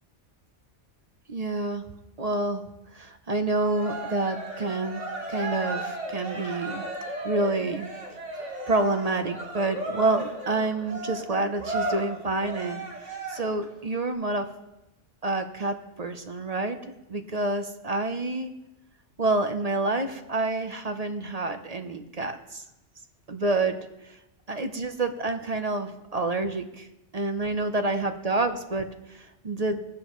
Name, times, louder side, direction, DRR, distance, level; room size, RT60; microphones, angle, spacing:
voice 1, 1.3-1.8 2.2-2.6 2.9-5.0 5.3-6.9 7.2-7.9 8.7-14.5 15.2-18.5 19.2-22.6 23.3-23.8 24.0-24.2 24.5-26.9 27.1-29.8, right 2 dB, 40° right, 7 dB, 0.7 m, -28 dB
Cheering, 3.6-13.7, right 1 dB, 80° right, 2.4 m, -35 dB
21.5 x 8.6 x 3.1 m, 0.95 s
omnidirectional pair, 1.2 m